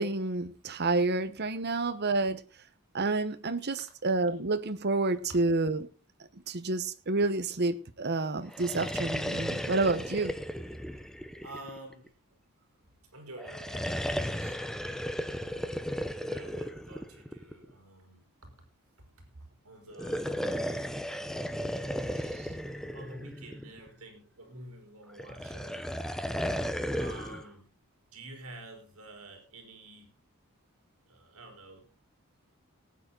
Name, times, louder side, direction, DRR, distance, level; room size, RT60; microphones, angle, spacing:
voice 1, 0.0-2.4 2.9-5.9 6.5-10.3 22.3-22.5, right 3 dB, 50° right, 11 dB, 1.1 m, -29 dB
sound 1, 8.5-12.1 13.4-17.7 19.9-23.9 25.2-27.5, equal, ahead, 0.8 m, -35 dB
voice 2, 11.4-12.1 13.1-14.8 15.4-18.6 19.0-20.4 22.4-26.0 27.0-27.7 28.1-30.1 31.1-31.9, right 1 dB, 80° right, 4 dB, 4.3 m, -49 dB
19.0 x 9.2 x 3.9 m, 0.34 s
head